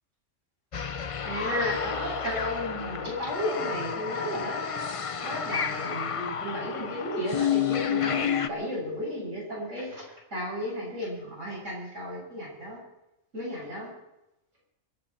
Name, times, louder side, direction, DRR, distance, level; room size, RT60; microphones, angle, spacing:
sound 1, 0.7-8.5, left 8 dB, 40° left, 0.5 m, -30 dB
voice 1, 1.2-4.8 5.2-10.0 10.3-12.8 13.3-13.9, equal, 80° right, -4 dB, 7.4 m, -34 dB
24.5 x 11.5 x 4.4 m, 0.91 s
omnidirectional pair, 1.3 m